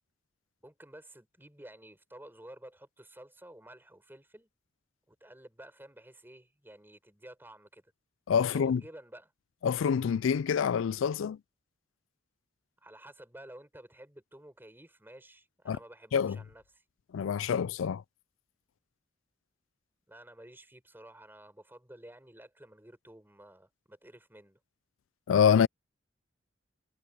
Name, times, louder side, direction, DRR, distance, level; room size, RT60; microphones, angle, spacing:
voice 1, 0.6-4.5 5.1-7.9 8.4-9.3 12.8-16.8 20.1-24.6, right 1 dB, 10° right, 5.3 m, -52 dB
voice 2, 8.3-8.8 9.6-11.4 15.7-15.8 16.1-16.4 17.1-18.0 25.3-25.7, left 7 dB, 85° left, 0.4 m, -26 dB
head